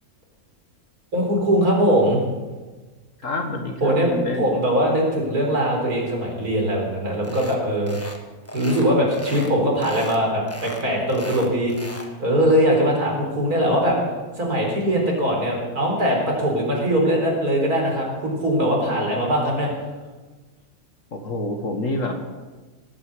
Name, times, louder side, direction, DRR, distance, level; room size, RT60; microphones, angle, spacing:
voice 1, 1.1-2.2 3.8-8.0 8.5-14.0 14.4-19.8, equal, 85° right, 0 dB, 4.7 m, -21 dB
voice 2, 3.2-4.5 12.8-12.9 18.7-19.3 21.1-22.2, left 2 dB, 60° left, 4 dB, 2.1 m, -28 dB
sound 1, 7.2-7.6 7.9-8.2 8.5-9.5 9.8-10.2 10.5-12.1, left 1 dB, 10° left, 1.5 m, -37 dB
18.5 x 9.3 x 8.0 m, 1.3 s
omnidirectional pair, 1.6 m